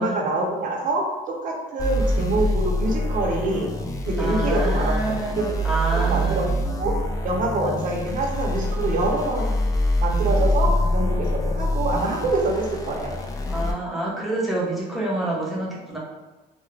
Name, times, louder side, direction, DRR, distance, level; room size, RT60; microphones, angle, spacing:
voice 1, 0.0-3.7 4.1-5.6 5.9-6.5 6.8-6.9 7.2-9.5 10.0-13.1, right 2 dB, 50° right, -1 dB, 0.6 m, -25 dB
sound 1, 1.8-13.7, equal, 20° left, 0.3 m, -25 dB
voice 2, 4.2-6.5 13.5-16.0, right 2 dB, ahead, -6 dB, 0.8 m, -28 dB
2.3 x 2.1 x 3.1 m, 1.2 s
cardioid pair, 110°, 17 cm